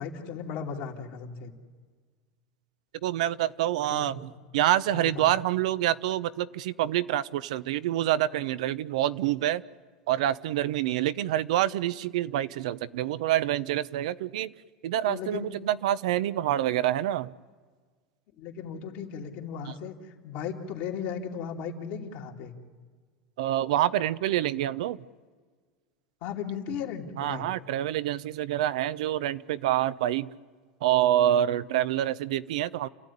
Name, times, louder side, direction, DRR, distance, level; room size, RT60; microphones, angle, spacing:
voice 1, 0.0-1.5 3.9-4.2 4.9-5.3 15.0-15.5 18.4-20.0 20.2-22.5 26.2-27.5, left 7 dB, 65° left, 1 dB, 2.8 m, -36 dB
voice 2, 3.0-9.6 10.1-14.5 14.8-17.3 19.7-19.8 23.4-25.0 27.2-30.3 30.8-32.9, right 12 dB, 80° right, 15 dB, 0.7 m, -27 dB
29.5 x 13.5 x 9.9 m, 1.5 s
supercardioid pair, 115°, 4 cm